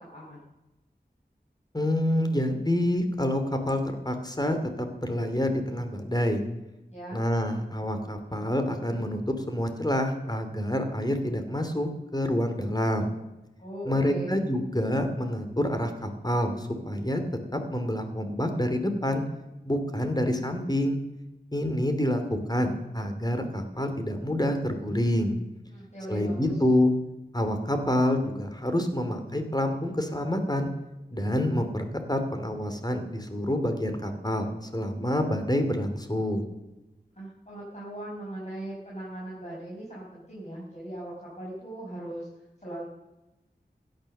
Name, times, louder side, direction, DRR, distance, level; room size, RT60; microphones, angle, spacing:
voice 1, 0.1-0.5 6.9-7.2 13.6-14.4 25.7-26.6 37.1-42.3 42.6-42.9, right 1 dB, 40° left, -6 dB, 5.6 m, -39 dB
voice 2, 1.7-6.4 7.1-13.1 13.9-17.2 17.5-19.2 19.6-21.0 21.5-25.3 26.1-26.9 27.3-30.7 31.1-36.5, left 1 dB, 20° left, 6 dB, 2.6 m, -27 dB
16.5 x 10.5 x 6.7 m, 1.0 s
wide cardioid pair, 45°, 18 cm